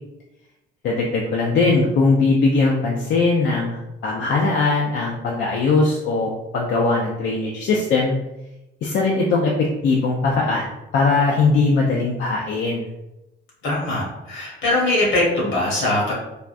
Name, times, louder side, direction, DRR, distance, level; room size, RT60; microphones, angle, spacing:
voice 1, 0.8-8.2 8.8-12.9, left 3 dB, 70° left, -1 dB, 0.5 m, -20 dB
voice 2, 13.6-16.1, left 1 dB, 85° left, -4 dB, 1.2 m, -21 dB
3.4 x 2.3 x 2.5 m, 0.97 s
cardioid pair, 90°, 20 cm